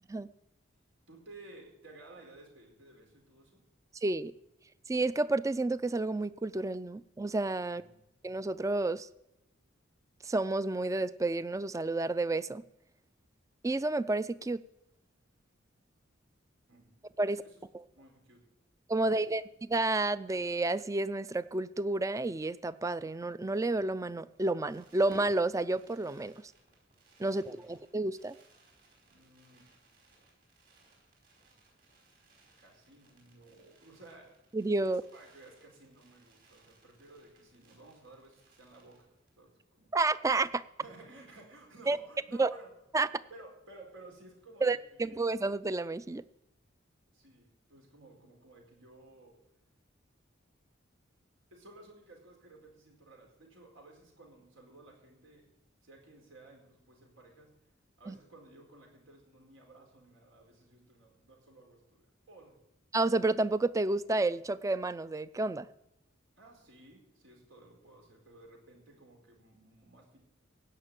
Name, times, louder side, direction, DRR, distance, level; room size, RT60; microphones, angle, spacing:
voice 1, 1.1-3.6 7.6-8.0 16.7-18.4 18.9-19.3 27.3-27.7 29.1-29.6 32.6-34.3 34.8-39.1 39.4-40.0 40.8-42.7 43.3-45.2 47.1-49.4 51.5-55.5 55.8-57.5 58.0-62.0 62.3-62.6 66.4-70.2, right 2 dB, 85° right, 1 dB, 4.6 m, -55 dB
voice 2, 4.0-4.3 4.9-7.8 8.2-9.1 10.2-12.6 13.6-14.6 17.2-17.4 18.9-26.3 27.2-28.4 34.5-35.0 39.9-40.6 41.9-42.0 42.4-42.5 42.9-43.1 44.6-46.2 58.1-58.2 62.9-65.7, right 2 dB, 15° right, 16 dB, 0.4 m, -30 dB
Fireworks, 24.3-39.4 39.7-39.8 40.0-40.3, right 2 dB, 50° right, 5.3 m, -62 dB
16.5 x 5.9 x 9.0 m, 0.88 s
head